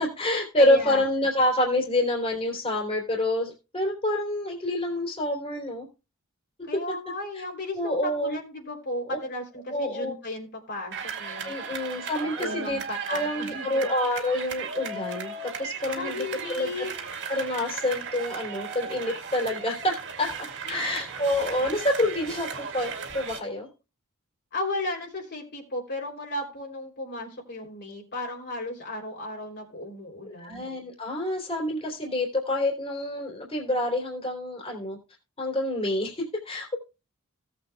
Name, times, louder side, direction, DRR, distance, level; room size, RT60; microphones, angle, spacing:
voice 1, 0.0-5.9 6.6-6.8 7.3-7.4 7.7-8.4 9.1-9.2 9.7-10.1 11.4-12.8 13.1-16.9 17.3-20.3 20.7-23.7 30.4-35.0 35.4-36.8, left 1 dB, 30° left, 0 dB, 3.3 m, -27 dB
voice 2, 0.6-1.0 6.7-11.5 12.4-13.9 15.9-17.0 20.7-20.8 24.5-30.7, left 1 dB, 55° left, -1 dB, 3.3 m, -35 dB
sound 1, 10.9-23.4, right 5 dB, 55° right, 2.0 m, -36 dB
17.5 x 7.8 x 2.3 m, 0.31 s
head